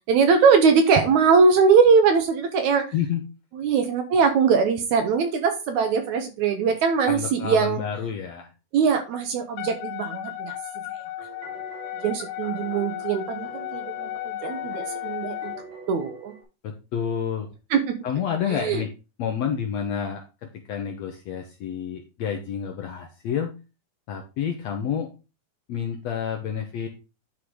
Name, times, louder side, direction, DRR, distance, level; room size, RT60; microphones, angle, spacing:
voice 1, 0.1-2.9 3.5-7.8 8.7-10.5 12.0-15.5 15.9-16.3 17.7-18.0 18.5-18.8, right 5 dB, 70° right, 7 dB, 2.0 m, -21 dB
voice 2, 2.9-3.2 7.1-8.5 16.6-17.5 18.0-18.9 19.2-20.2 20.7-23.5 24.1-25.1 25.7-26.9, left 8 dB, 70° left, 4 dB, 1.7 m, -29 dB
Wind instrument woodwind instrument, 9.6-15.6, left 15 dB, 90° left, 2.6 m, -34 dB
sound 1, 11.2-16.4, right 4 dB, 85° right, 4.0 m, -44 dB
10.0 x 3.8 x 4.8 m, 0.29 s
omnidirectional pair, 4.0 m